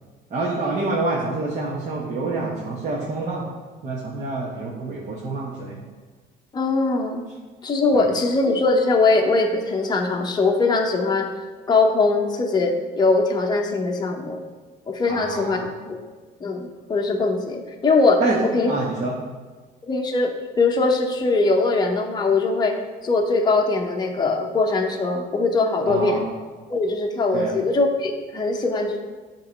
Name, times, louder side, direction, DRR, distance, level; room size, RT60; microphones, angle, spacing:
voice 1, 0.3-3.5 3.8-5.8 7.9-8.1 15.1-15.7 18.2-19.2 25.9-26.3 27.3-27.5, right 3 dB, 45° right, -4 dB, 1.2 m, -27 dB
voice 2, 6.5-7.2 7.6-11.3 11.7-14.4 14.9-16.0 16.4-18.2 18.5-18.7 19.9-22.8 23.0-26.2 26.7-29.0, left 3 dB, 25° left, 1 dB, 0.8 m, -21 dB
8.2 x 3.0 x 5.1 m, 1.4 s
cardioid pair, 110°, 17 cm